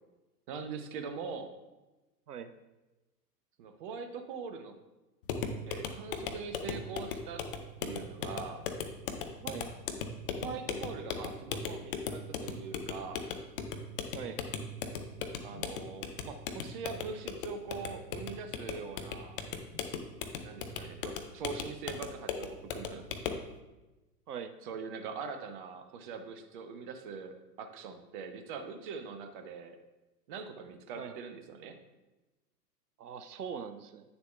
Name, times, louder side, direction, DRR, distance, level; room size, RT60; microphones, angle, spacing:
voice 1, 0.5-1.5 3.6-4.7 5.7-7.5 7.8-8.6 10.4-13.3 15.4-19.4 20.4-23.1 24.6-29.8 30.3-31.8, right 5 dB, 30° right, 7 dB, 0.6 m, -42 dB
sound 1, 5.2-23.5, left 5 dB, 35° left, 0.5 m, -38 dB
voice 2, 33.0-34.0, right 7 dB, 75° right, 11 dB, 0.6 m, -41 dB
9.2 x 6.8 x 2.2 m, 1.1 s
figure-of-eight pair, 105°, 48 cm